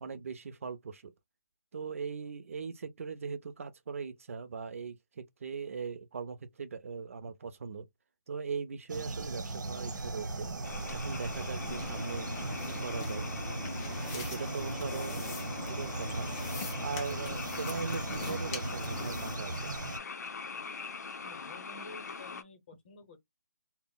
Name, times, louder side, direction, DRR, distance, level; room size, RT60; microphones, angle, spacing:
voice 1, 0.0-1.1 1.7-7.9 8.3-10.5 10.9-12.3 12.6-13.3 14.1-16.3 16.8-19.7, right 5 dB, 45° right, 0.5 m, -40 dB
sound 1, 8.9-20.0, right 2 dB, 80° right, 0.9 m, -38 dB
sound 2, 10.6-22.4, left 5 dB, 60° left, 0.5 m, -43 dB
sound 3, 11.6-19.4, left 4 dB, 10° left, 0.4 m, -42 dB
voice 2, 21.2-23.2, left 3 dB, 35° left, 0.8 m, -51 dB
2.2 x 2.0 x 3.7 m
hypercardioid pair, 165°, 10 cm